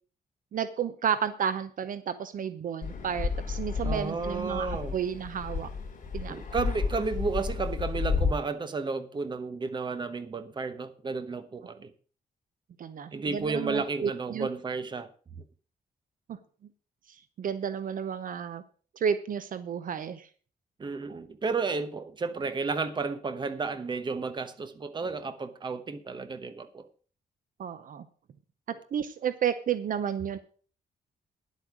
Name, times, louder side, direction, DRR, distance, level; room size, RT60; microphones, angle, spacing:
voice 1, 0.5-5.7 6.1-6.4 12.8-14.5 16.3-16.4 17.4-18.6 19.0-20.3 27.6-28.0 28.9-30.4, right 8 dB, 55° right, 0.7 m, -31 dB
Fixed-wing aircraft airplane, 2.8-8.3, left 5 dB, 50° left, 3.0 m, -32 dB
voice 2, 3.8-5.0 6.3-11.9 13.1-15.1 20.8-26.9, right 4 dB, 30° right, 1.0 m, -32 dB
10.5 x 8.3 x 6.1 m
wide cardioid pair, 165°, 16 cm